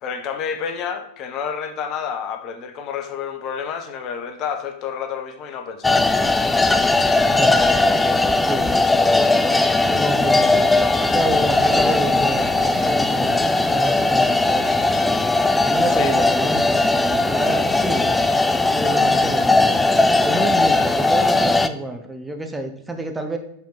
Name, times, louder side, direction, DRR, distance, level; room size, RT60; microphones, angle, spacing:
voice 1, 0.0-6.0 15.9-16.1, left 7 dB, 35° left, 6 dB, 0.8 m, -29 dB
sound 1, 5.8-21.7, left 2 dB, 10° left, 0.4 m, -18 dB
voice 2, 7.2-7.6 8.4-8.7 9.8-10.8 11.1-14.9 15.7-19.8 20.2-23.4, right 2 dB, 10° right, 5 dB, 0.8 m, -29 dB
6.2 x 5.6 x 3.9 m, 0.72 s
figure-of-eight pair, 90°, 0 cm